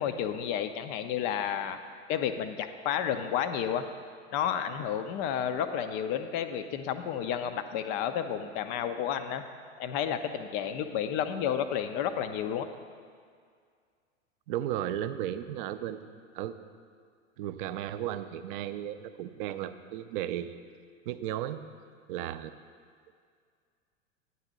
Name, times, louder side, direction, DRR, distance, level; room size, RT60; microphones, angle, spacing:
voice 1, 0.0-1.8 2.1-3.9 4.3-9.4 9.8-12.7, left 9 dB, 25° left, 9 dB, 0.3 m, -31 dB
voice 2, 14.5-16.5 17.4-20.6 21.1-21.6 22.1-22.5, right 11 dB, 45° right, 11 dB, 0.5 m, -35 dB
9.5 x 4.1 x 7.3 m, 2.1 s
figure-of-eight pair, 90°, 39 cm